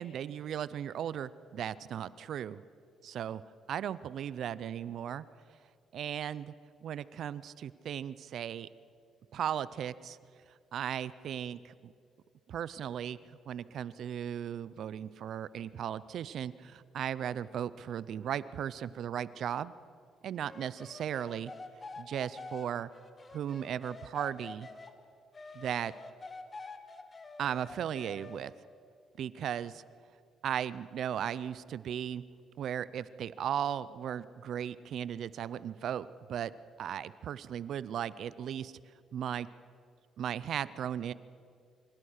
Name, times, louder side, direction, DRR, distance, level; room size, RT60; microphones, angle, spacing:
voice 1, 0.0-2.6 3.0-3.4 3.7-5.2 5.9-6.5 6.8-8.7 9.3-10.2 10.7-11.9 12.5-19.7 20.2-21.5 22.0-22.9 23.3-24.7 25.5-25.9 27.4-28.5 29.2-29.8 30.4-32.2 32.6-36.5 36.8-38.7 39.1-39.5 40.2-41.1, right 9 dB, 70° right, 18 dB, 0.5 m, -36 dB
sound 1, 20.4-24.9 25.3-28.5, left 3 dB, 30° left, 1.7 m, -47 dB
25.0 x 17.0 x 6.5 m, 2.2 s
cardioid pair, 90°, 0 cm